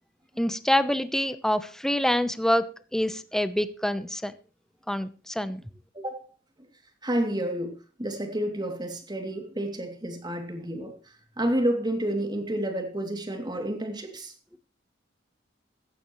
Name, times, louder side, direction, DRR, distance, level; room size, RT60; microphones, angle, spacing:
voice 1, 0.4-2.7 2.9-4.3 4.9-5.6, left 1 dB, 5° left, 0.9 m, -26 dB
voice 2, 5.9-6.3 6.6-6.7 7.0-14.3, right 1 dB, 20° right, 2.8 m, -30 dB
16.0 x 14.0 x 3.2 m
head